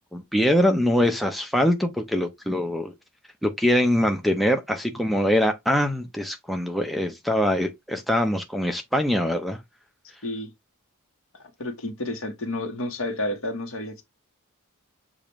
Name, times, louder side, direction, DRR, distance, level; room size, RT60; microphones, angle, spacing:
voice 1, 0.1-2.9 3.4-9.6, equal, ahead, 0.5 m, -23 dB
voice 2, 11.6-14.0, left 1 dB, 65° left, 1.1 m, -30 dB
6.8 x 2.5 x 3.0 m
head